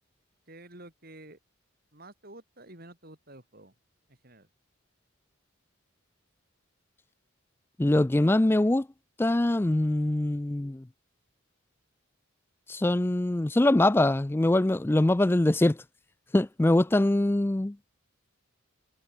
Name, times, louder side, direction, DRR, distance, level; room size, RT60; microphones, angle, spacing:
voice 1, 0.5-1.4 1.9-3.7 4.1-4.5, right 1 dB, 45° right, 6.1 m, -50 dB
voice 2, 7.8-8.9 9.2-10.9 12.7-15.8 16.3-17.8, left 1 dB, 10° left, 0.3 m, -23 dB
head